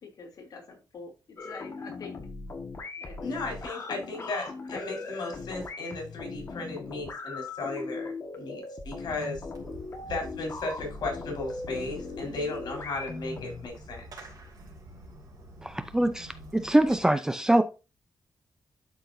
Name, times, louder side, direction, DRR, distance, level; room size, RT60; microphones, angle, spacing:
voice 1, 0.0-2.2 3.0-3.3 3.9-4.0 4.7-5.2, left 4 dB, 60° left, 2.8 m, -45 dB
sound 1, 1.4-13.7, left 3 dB, 40° left, 1.5 m, -39 dB
voice 2, 3.2-9.4 10.1-14.0, left 3 dB, 80° left, 4.1 m, -35 dB
Fireworks, 9.5-17.0, right 1 dB, 60° right, 2.7 m, -47 dB
voice 3, 15.6-17.6, right 1 dB, 10° right, 0.5 m, -24 dB
12.0 x 4.5 x 2.6 m
wide cardioid pair, 165°, 7 cm